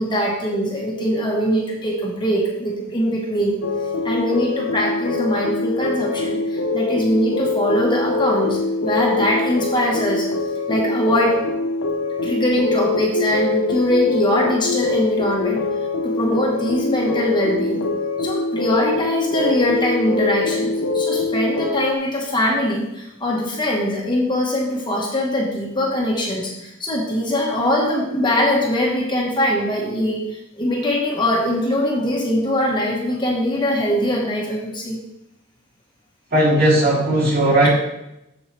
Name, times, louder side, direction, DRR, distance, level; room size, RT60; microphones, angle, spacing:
voice 1, 0.0-3.6 4.0-10.3 10.7-11.4 12.2-15.6 16.0-17.9 18.2-35.0, equal, 25° left, -2 dB, 1.2 m, -22 dB
sound 1, 3.6-22.0, left 3 dB, 75° left, 0.5 m, -23 dB
voice 2, 36.3-37.7, right 1 dB, 50° right, -6 dB, 3.0 m, -16 dB
7.2 x 7.1 x 3.2 m, 0.87 s
head